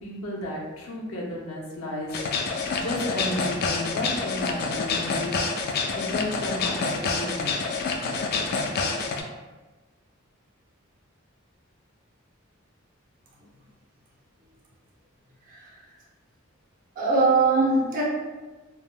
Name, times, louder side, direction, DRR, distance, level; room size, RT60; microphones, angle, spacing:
voice 1, 0.0-2.6 2.8-7.7, left 1 dB, 75° left, -3 dB, 0.6 m, -33 dB
sound 1, 2.1-9.2, left 4 dB, 50° left, 0.3 m, -28 dB
voice 2, 17.0-18.0, right 3 dB, 40° right, -4 dB, 0.6 m, -21 dB
3.4 x 2.0 x 2.3 m, 1.2 s
head